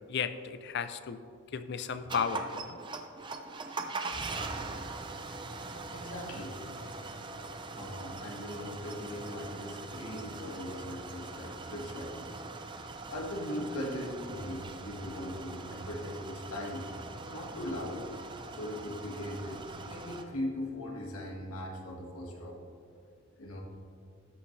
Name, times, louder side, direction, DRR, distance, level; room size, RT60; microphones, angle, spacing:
voice 1, 0.1-1.2 1.5-2.8, left 6 dB, 50° left, 11 dB, 0.4 m, -34 dB
sound 1, 2.1-20.2, right 3 dB, 20° right, 0.5 m, -42 dB
voice 2, 5.9-6.8 7.7-12.3 13.1-16.9 17.3-18.0 18.6-22.6 23.4-23.6, left 1 dB, 80° left, -1 dB, 1.9 m, -39 dB
12.5 x 9.1 x 3.2 m, 2.4 s
head